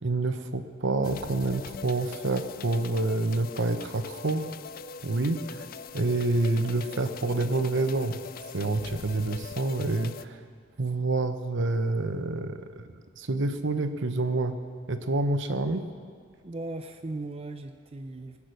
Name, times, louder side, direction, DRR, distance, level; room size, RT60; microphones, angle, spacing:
voice 1, 0.0-4.4 5.0-5.7 5.9-8.2 8.5-10.4 10.8-14.6 14.9-15.9, right 2 dB, 65° right, 9 dB, 0.9 m, -28 dB
sound 1, 1.0-10.2, left 5 dB, 45° left, 0.4 m, -42 dB
voice 2, 16.4-18.4, right 2 dB, 30° right, 7 dB, 0.5 m, -37 dB
19.5 x 8.6 x 6.5 m, 2.1 s
head